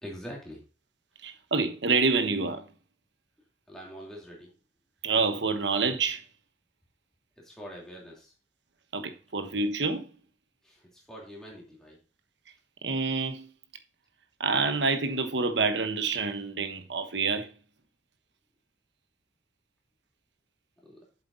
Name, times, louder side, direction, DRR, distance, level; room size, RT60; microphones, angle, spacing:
voice 1, 0.0-0.6 3.7-4.6 7.4-8.3 10.6-12.0 20.8-21.1, equal, 5° left, 2.8 m, -44 dB
voice 2, 1.2-2.6 5.0-6.2 8.9-10.1 12.8-13.5 14.4-17.5, right 4 dB, 75° right, 1.2 m, -27 dB
8.1 x 7.7 x 2.6 m
head